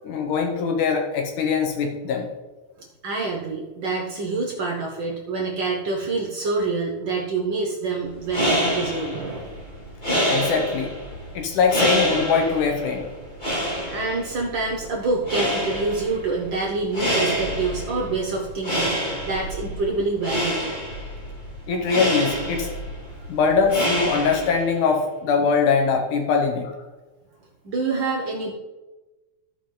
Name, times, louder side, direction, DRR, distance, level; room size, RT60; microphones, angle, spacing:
voice 1, 0.0-2.3 10.3-10.9 11.3-13.1 21.7-22.7 23.3-26.7, left 5 dB, 75° left, 2 dB, 2.4 m, -22 dB
voice 2, 3.0-9.6 13.9-19.0 19.2-20.8 27.6-28.5, right 3 dB, 75° right, -1 dB, 1.0 m, -26 dB
sound 1, 8.1-24.7, equal, 15° left, 1.9 m, -27 dB
14.0 x 5.4 x 3.8 m, 1.1 s
omnidirectional pair, 3.7 m